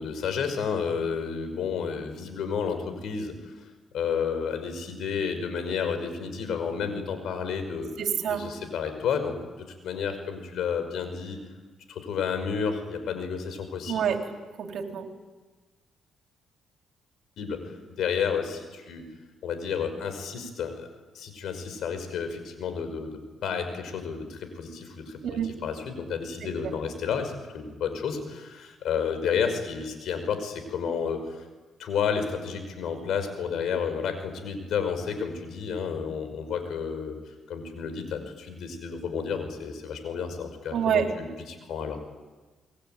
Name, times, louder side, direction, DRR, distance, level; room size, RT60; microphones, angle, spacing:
voice 1, 0.0-3.5 3.9-7.9 8.3-11.4 11.9-14.0 17.4-17.6 18.0-19.0 19.4-20.9 21.1-23.1 23.4-31.5 31.8-37.2 37.5-42.0, left 6 dB, 75° left, 8 dB, 5.5 m, -31 dB
voice 2, 8.0-8.5 13.9-14.3 14.6-15.1 25.2-25.5 26.4-26.7 40.7-41.1, right 8 dB, 70° right, 3 dB, 3.5 m, -28 dB
27.0 x 21.5 x 9.2 m, 1.3 s
cardioid pair, 90°, 0 cm